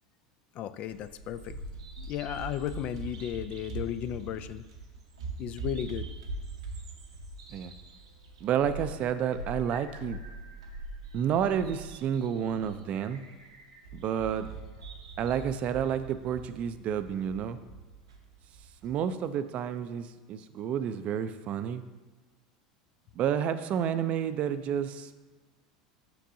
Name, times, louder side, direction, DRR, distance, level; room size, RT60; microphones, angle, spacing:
voice 1, 0.5-1.6 2.0-4.6 5.4-6.1, left 11 dB, 45° left, 12 dB, 0.3 m, -35 dB
Bird vocalization bird call bird song, 0.9-19.0, right 2 dB, 80° right, 0.8 m, -42 dB
voice 2, 8.4-10.2 11.1-13.2 13.9-14.5 15.2-17.6 18.8-21.8 23.2-25.1, right 8 dB, 45° right, 11 dB, 0.4 m, -30 dB
7.6 x 6.0 x 2.7 m, 1.3 s
hypercardioid pair, 80°, 3 cm